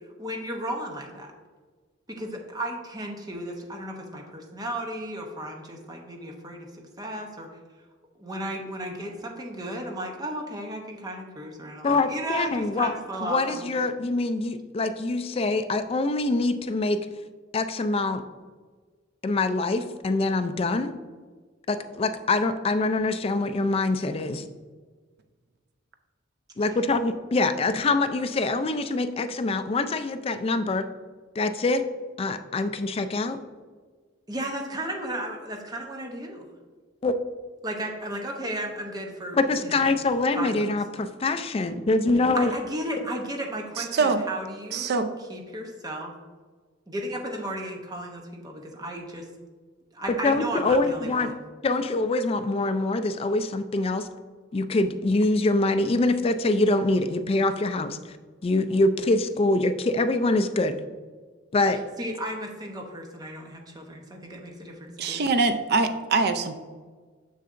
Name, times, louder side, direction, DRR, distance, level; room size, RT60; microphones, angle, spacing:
voice 1, 0.2-1.3 2.1-7.5 8.2-13.8 26.7-26.8 34.3-36.5 37.6-39.8 40.4-40.7 42.3-44.9 45.2-46.1 46.9-49.3 49.9-51.4 61.7-65.2, right 1 dB, 20° right, 2 dB, 0.8 m, -34 dB
voice 2, 11.8-12.9 13.2-17.0 17.5-18.2 19.2-20.9 21.7-24.4 26.6-30.8 31.4-31.8 32.2-33.4 37.0-37.2 39.3-42.5 50.2-51.3 51.6-54.1 54.5-58.0 58.4-60.7 61.5-61.8, left 2 dB, 30° left, 9 dB, 0.3 m, -24 dB
voice 3, 43.8-44.2 44.7-45.1 65.0-66.5, right 3 dB, 50° right, 8 dB, 0.5 m, -24 dB
6.7 x 6.4 x 2.5 m, 1.5 s
head